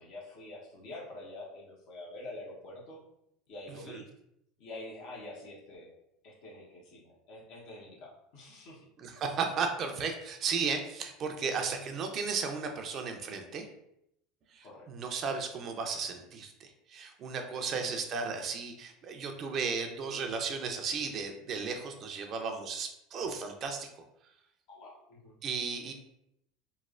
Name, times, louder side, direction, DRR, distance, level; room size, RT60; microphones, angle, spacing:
voice 1, 0.0-3.0 3.5-4.1 4.6-5.9 6.2-8.8 14.6-14.9 17.7-18.0 24.7-25.4, left 2 dB, 65° left, -4 dB, 0.8 m, -46 dB
voice 2, 9.0-13.7 14.5-23.9 25.4-25.9, right 5 dB, 45° right, 4 dB, 0.4 m, -35 dB
3.1 x 2.0 x 2.4 m, 0.77 s
hypercardioid pair, 95°, 0 cm